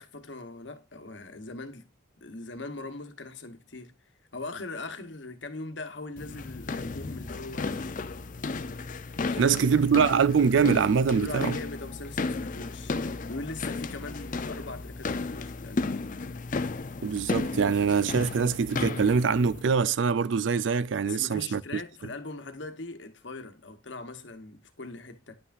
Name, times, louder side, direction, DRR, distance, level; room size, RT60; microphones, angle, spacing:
voice 1, 0.0-1.9 2.2-3.9 4.3-7.8 9.1-9.6 11.1-12.9 13.3-15.8 21.0-25.4, left 3 dB, 65° left, 1.1 m, -40 dB
sound 1, 6.2-19.6, left 3 dB, 45° left, 0.5 m, -34 dB
voice 2, 9.4-11.6 17.0-21.8, right 6 dB, 70° right, 0.4 m, -24 dB
9.7 x 5.8 x 2.5 m
head